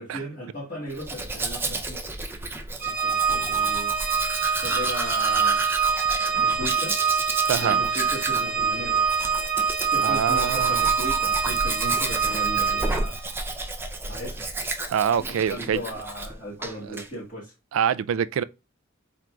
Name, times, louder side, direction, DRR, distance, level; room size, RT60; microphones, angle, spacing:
voice 1, 0.0-2.1 2.8-3.9 4.6-5.6 6.3-7.0 7.5-9.0 9.8-13.2 14.1-14.4 15.2-17.5, equal, 40° left, 1.4 m, -36 dB
Domestic sounds home sounds, 0.9-16.3 16.6-17.1, right 2 dB, 10° right, 0.5 m, -31 dB
Organ, 2.8-13.2, right 6 dB, 45° right, 0.9 m, -25 dB
voice 2, 7.4-7.8 10.0-10.8 14.9-15.8 16.8-17.0 17.7-18.4, right 8 dB, 80° right, 0.3 m, -25 dB
4.4 x 3.8 x 2.3 m
head